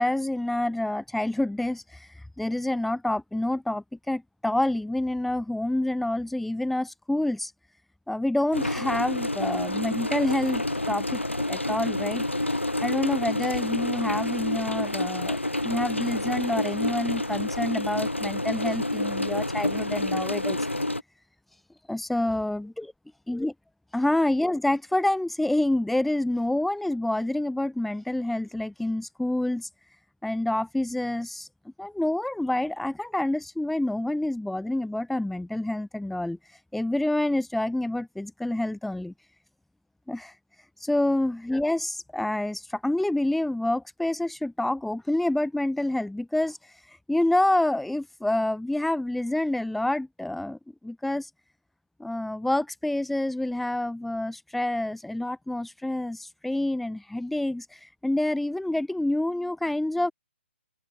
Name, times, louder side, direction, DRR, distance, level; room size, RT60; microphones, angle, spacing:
voice 1, 0.0-2.1 2.4-7.5 8.1-11.2 11.5-12.3 12.8-15.4 15.6-20.6 21.9-22.9 23.3-23.5 23.9-29.7 30.2-31.5 31.8-36.4 36.7-39.1 40.1-40.3 40.8-46.6 47.1-50.6 50.8-51.3 52.0-60.1, left 1 dB, ahead, 4.3 m, -27 dB
sound 1, 8.5-21.0, left 1 dB, 85° left, 4.0 m, -28 dB
open air
figure-of-eight pair, 135°, 6 cm